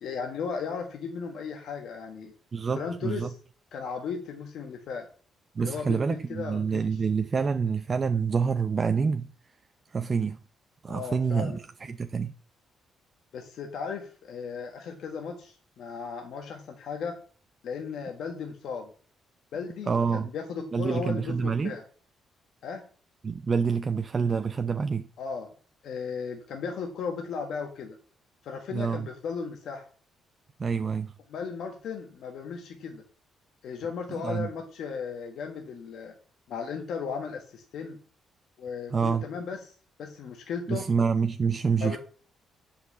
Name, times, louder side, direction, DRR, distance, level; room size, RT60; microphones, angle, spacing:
voice 1, 0.0-2.3 2.7-3.3 3.7-5.1 5.6-7.0 10.9-11.6 13.3-17.2 17.6-18.9 19.5-21.8 22.6-22.8 25.2-25.5 25.8-28.0 28.4-29.9 31.3-33.0 33.6-36.1 36.5-38.0 38.6-39.7 40.0-40.8 41.8-42.0, left 5 dB, 75° left, 1.5 m, -36 dB
voice 2, 2.5-3.3 5.6-9.3 9.9-10.4 10.8-12.3 19.9-20.3 20.7-21.7 23.2-25.1 28.7-29.1 30.6-31.1 34.2-34.5 38.9-39.2 40.7-42.0, right 5 dB, 35° right, 0.6 m, -27 dB
8.1 x 5.8 x 6.7 m
cardioid pair, 90°, 0 cm